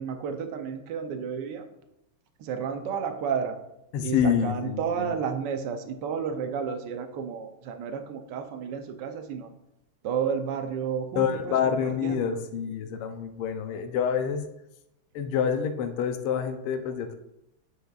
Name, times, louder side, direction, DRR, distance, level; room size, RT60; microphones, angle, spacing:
voice 1, 0.0-1.7 2.4-3.6 4.0-9.5 10.0-11.6 11.8-12.4, right 7 dB, 70° right, 7 dB, 1.1 m, -31 dB
voice 2, 3.9-5.1 11.2-14.4 15.2-17.2, left 7 dB, 90° left, 7 dB, 1.6 m, -27 dB
9.3 x 6.5 x 2.4 m, 0.87 s
omnidirectional pair, 2.4 m